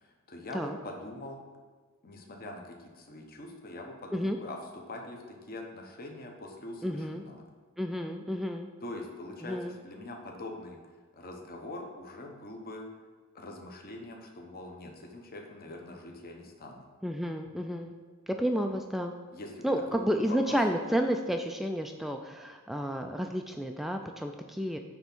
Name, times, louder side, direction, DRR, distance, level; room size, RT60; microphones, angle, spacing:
voice 1, 0.0-1.4 2.0-5.2 5.5-7.4 8.8-10.8 11.2-12.9 13.3-16.9 18.6-18.7 19.3-20.6, left 2 dB, 45° left, 1 dB, 1.0 m, -43 dB
voice 2, 6.8-7.2 7.8-8.7 9.4-9.8 17.0-17.9 18.4-19.1 19.6-24.8, equal, ahead, 4 dB, 0.3 m, -31 dB
9.7 x 3.5 x 6.0 m, 1.4 s
head